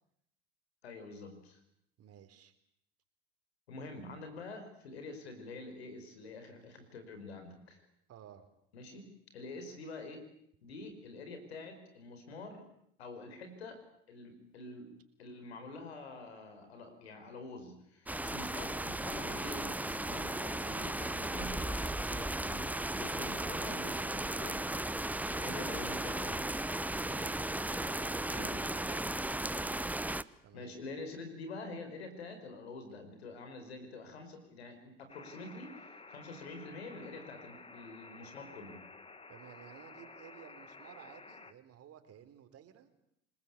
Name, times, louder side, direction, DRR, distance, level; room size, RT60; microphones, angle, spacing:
voice 1, 0.8-1.6 3.7-7.8 8.7-10.2 10.6-12.6 13.0-13.8 14.1-14.9 15.2-24.6 25.3-26.4 28.3-28.6 30.5-38.8, left 3 dB, 85° left, 8 dB, 5.1 m, -46 dB
voice 2, 2.0-2.5 8.1-8.5 26.9-29.9 30.4-30.8 39.3-42.9, right 10 dB, 50° right, 9 dB, 3.7 m, -55 dB
sound 1, 18.1-30.2, right 1 dB, 5° right, 0.9 m, -36 dB
sound 2, 35.1-41.5, left 3 dB, 20° left, 2.0 m, -53 dB
27.5 x 20.0 x 8.4 m, 0.74 s
hypercardioid pair, 70°, 31 cm